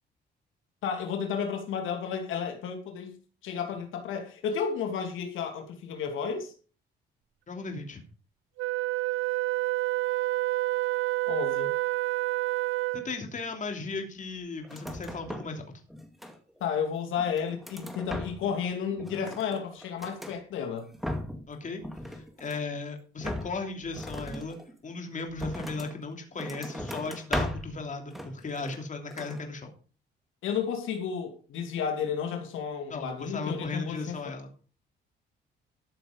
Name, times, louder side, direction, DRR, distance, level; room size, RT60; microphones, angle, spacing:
voice 1, 0.8-3.2 3.4-6.5 11.3-11.7 16.6-20.9 30.4-34.3, left 7 dB, 85° left, 2.7 m, -32 dB
voice 2, 7.5-8.0 12.9-15.6 21.5-29.7 32.9-34.5, left 3 dB, 40° left, 3.1 m, -36 dB
Wind instrument woodwind instrument, 8.6-13.2, right 18 dB, 85° right, 0.7 m, -28 dB
sound 1, 14.6-15.6 15.9-16.7 17.2-18.6 18.9-20.4 20.8-21.5 21.8-22.7 23.2-26.0 26.4-27.8 28.1-28.9 29.1-29.4, equal, ahead, 2.4 m, -38 dB
13.5 x 6.7 x 5.2 m
cardioid pair, 90°, 20 cm